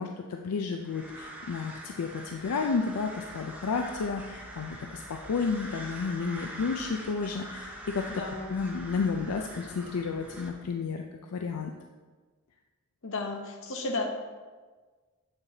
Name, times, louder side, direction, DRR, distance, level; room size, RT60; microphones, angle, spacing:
voice 1, 0.0-8.1 8.5-11.0 11.3-11.7, left 5 dB, 80° left, 3 dB, 0.4 m, -32 dB
sound 1, 0.8-10.5, equal, 5° right, 0.7 m, -44 dB
voice 2, 8.1-8.5 13.0-14.1, left 2 dB, 60° left, 3 dB, 0.9 m, -33 dB
7.3 x 6.7 x 2.8 m, 1.4 s
head